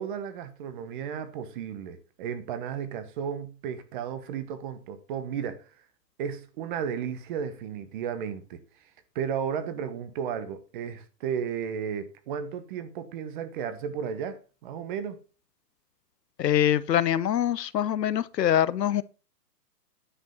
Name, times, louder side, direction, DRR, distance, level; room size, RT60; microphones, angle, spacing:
voice 1, 0.0-5.7 6.2-8.6 9.1-15.2, right 7 dB, 30° right, 1.2 m, -34 dB
voice 2, 16.4-19.0, left 10 dB, 85° left, 0.8 m, -24 dB
10.0 x 5.3 x 5.3 m
hypercardioid pair, 145°, 48 cm